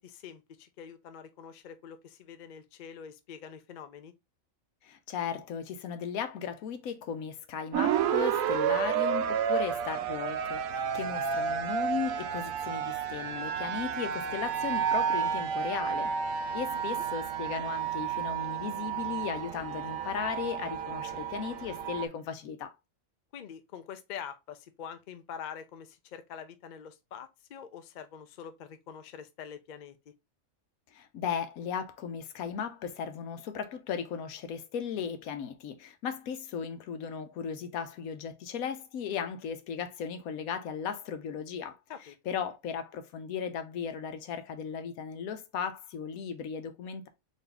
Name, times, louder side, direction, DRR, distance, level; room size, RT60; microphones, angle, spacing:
voice 1, 0.0-4.1 16.7-17.0 23.3-30.1 41.9-42.1, left 8 dB, 65° left, 0.4 m, -45 dB
voice 2, 4.8-16.1 16.5-22.7 30.9-41.8 42.3-47.1, left 7 dB, 85° left, 1.1 m, -36 dB
sound 1, 7.7-22.1, right 8 dB, 75° right, 1.0 m, -31 dB
4.1 x 2.7 x 3.3 m
omnidirectional pair, 1.5 m